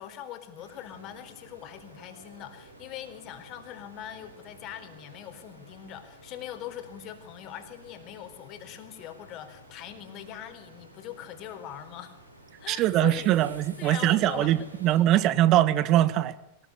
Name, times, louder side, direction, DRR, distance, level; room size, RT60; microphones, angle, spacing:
voice 1, 0.0-12.2 12.6-13.3 13.8-15.0, left 11 dB, 35° left, 4.1 m, -41 dB
sound 1, 0.6-15.0, right 1 dB, 90° right, 5.2 m, -52 dB
voice 2, 12.7-16.3, right 13 dB, 35° right, 1.7 m, -22 dB
23.5 x 20.0 x 9.9 m
figure-of-eight pair, 90°, 0 cm